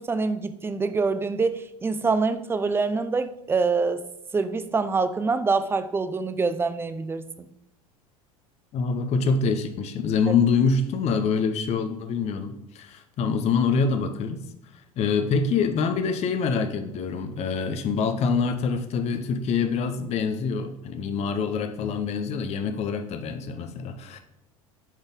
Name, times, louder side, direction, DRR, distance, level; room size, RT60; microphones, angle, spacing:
voice 1, 0.0-4.0 4.3-7.2, right 4 dB, 15° right, 11 dB, 0.4 m, -25 dB
voice 2, 8.7-14.4 15.0-24.2, left 5 dB, 35° left, 8 dB, 0.7 m, -25 dB
7.2 x 4.0 x 3.6 m, 0.80 s
figure-of-eight pair, 75°, 18 cm